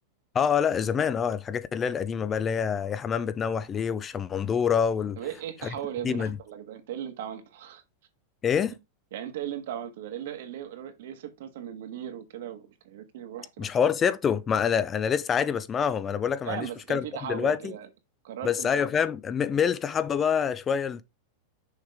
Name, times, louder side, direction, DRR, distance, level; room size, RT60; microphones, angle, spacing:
voice 1, 0.3-5.2 5.6-5.7 6.0-6.4 8.4-8.8 13.6-17.7 18.4-21.0, left 7 dB, 20° left, 0.4 m, -26 dB
voice 2, 5.2-7.8 9.1-13.7 16.4-17.9 18.2-18.9, right 10 dB, 70° right, 1.5 m, -37 dB
6.4 x 5.0 x 3.5 m
supercardioid pair, 160°, 0 cm